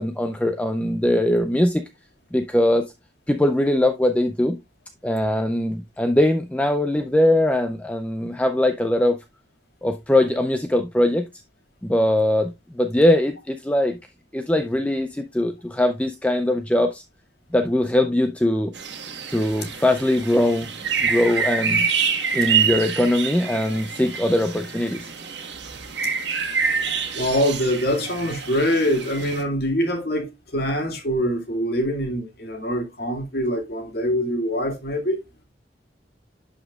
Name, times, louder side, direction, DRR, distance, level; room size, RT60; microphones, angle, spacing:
voice 1, 0.0-1.8 2.3-2.8 3.3-4.6 5.0-9.2 9.8-11.2 11.8-14.0 14.3-17.0 17.5-18.7 19.3-20.7 21.0-21.9 22.3-25.1, left 1 dB, 5° left, 0.4 m, -21 dB
sound 1, 18.7-29.4, right 6 dB, 70° right, 1.6 m, -27 dB
voice 2, 27.1-35.2, equal, 55° left, 2.2 m, -24 dB
11.5 x 5.0 x 2.3 m
head